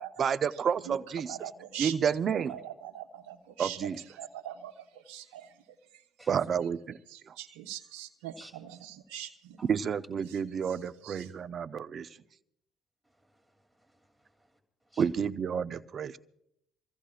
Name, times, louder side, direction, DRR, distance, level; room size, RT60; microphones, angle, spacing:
voice 1, 0.2-1.4 1.8-2.6 3.6-4.0 6.3-7.0 7.3-7.4 9.7-12.1 15.0-16.2, right 7 dB, 50° right, 12 dB, 0.7 m, -30 dB
voice 2, 1.3-1.9 2.5-3.8 4.2-5.5 7.1-9.6 10.3-10.4 11.0-11.3, right 11 dB, 85° right, 4 dB, 1.0 m, -42 dB
voice 3, 13.0-14.6 14.8-15.1, right 1 dB, 5° right, 2 dB, 2.8 m, -57 dB
26.0 x 15.0 x 2.5 m, 0.75 s
supercardioid pair, 70°, 0 cm